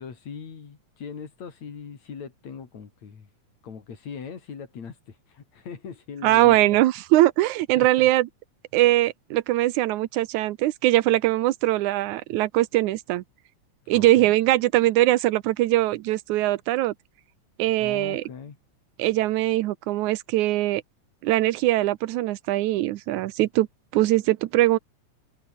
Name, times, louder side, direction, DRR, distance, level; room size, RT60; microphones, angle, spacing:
voice 1, 0.0-3.3 3.6-6.6 7.8-8.1 13.9-14.3 17.8-18.6, left 6 dB, 65° left, 4.4 m, -40 dB
voice 2, 6.2-8.3 8.7-13.2 13.9-16.9 17.6-18.2 19.0-20.8 21.2-23.7 23.9-24.8, right 16 dB, 85° right, 2.3 m, -21 dB
open air
omnidirectional pair, 3.4 m